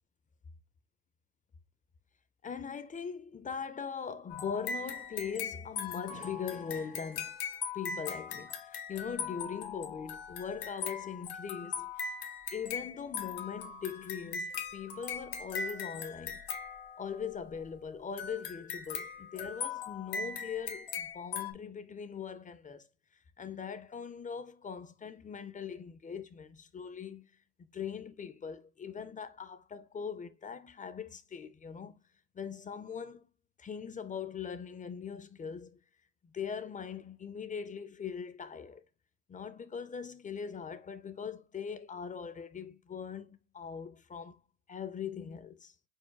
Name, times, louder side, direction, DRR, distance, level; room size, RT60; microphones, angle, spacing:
voice 1, 2.4-7.4 7.7-12.1 12.5-16.4 17.0-22.9 23.4-27.3 27.7-32.0 32.3-33.2 33.6-35.8 36.3-38.8 39.3-44.4 44.7-45.7, left 7 dB, 20° left, 0.4 m, -41 dB
sound 1, 4.3-17.4 18.2-21.5, left 6 dB, 60° left, 1.1 m, -40 dB
4.6 x 4.4 x 2.2 m
cardioid pair, 110°, 45 cm